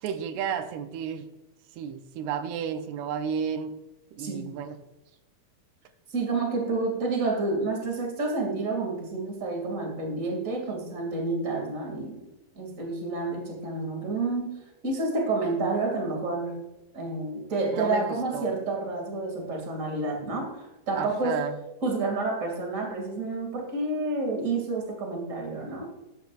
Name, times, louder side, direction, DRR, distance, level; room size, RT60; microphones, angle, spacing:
voice 1, 0.0-1.3 1.8-3.8 4.1-4.8 17.7-18.5 21.0-21.6, right 7 dB, 90° right, 2.8 m, -32 dB
voice 2, 6.1-12.2 12.5-14.5 14.8-16.6 16.9-21.4 21.8-25.9, right 3 dB, 25° right, 2.2 m, -29 dB
12.5 x 12.0 x 2.5 m
omnidirectional pair, 4.5 m